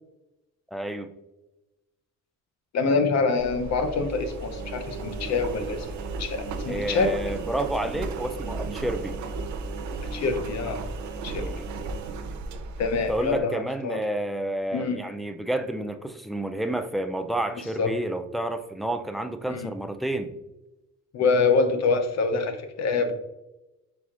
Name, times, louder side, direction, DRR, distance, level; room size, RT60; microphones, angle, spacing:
voice 1, 0.7-1.1 6.7-9.2 11.4-11.7 13.1-20.3, right 1 dB, ahead, 7 dB, 0.3 m, -30 dB
voice 2, 2.7-5.9 6.2-7.1 10.1-10.8 11.2-11.4 12.8-14.0 14.7-15.0 17.8-17.9 19.5-19.7 21.1-23.1, left 4 dB, 60° left, 7 dB, 0.7 m, -25 dB
Engine, 3.4-13.4, right 3 dB, 70° right, 0.7 m, -34 dB
4.7 x 4.1 x 2.4 m, 0.96 s
cardioid pair, 90°, 30 cm